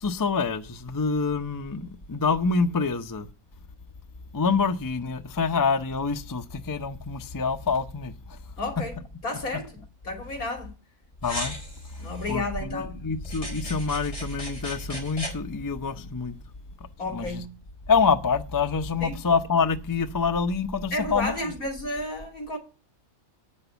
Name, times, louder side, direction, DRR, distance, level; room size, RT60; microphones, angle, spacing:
voice 1, 0.0-3.3 4.3-8.1 11.2-11.5 12.3-16.4 17.1-17.4 17.9-21.3, left 5 dB, 30° left, 0.4 m, -26 dB
voice 2, 8.6-10.7 12.0-13.1 17.0-17.5 19.0-19.2 20.9-22.6, left 2 dB, 75° left, 3.3 m, -32 dB
sound 1, 11.2-12.3 13.2-15.3, left 1 dB, 45° left, 5.2 m, -37 dB
9.0 x 6.7 x 6.8 m
omnidirectional pair, 1.5 m